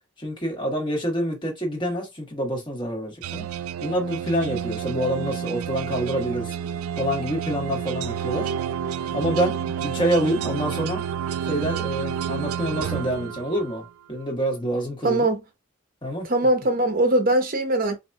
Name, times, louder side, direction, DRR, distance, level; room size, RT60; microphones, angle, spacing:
voice 1, 0.2-3.5 3.8-6.5 7.0-8.5 9.1-11.0 11.4-15.3 16.0-16.3, equal, 20° left, 1.3 m, -27 dB
sound 1, 3.2-13.9, right 8 dB, 85° right, 0.3 m, -30 dB
voice 2, 15.0-15.4 16.3-18.0, right 1 dB, 40° right, 0.8 m, -21 dB
4.6 x 2.6 x 2.2 m
head